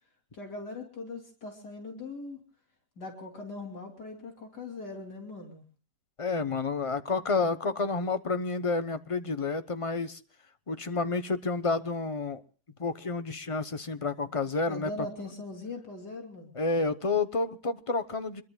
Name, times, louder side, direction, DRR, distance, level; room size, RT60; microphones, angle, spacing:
voice 1, 0.3-2.4 3.0-5.6 14.7-16.5, left 2 dB, 65° left, 3.5 m, -40 dB
voice 2, 6.2-10.2 10.7-12.4 12.8-14.9 16.5-18.4, left 3 dB, 30° left, 0.6 m, -30 dB
28.0 x 22.0 x 2.3 m
omnidirectional pair, 1.9 m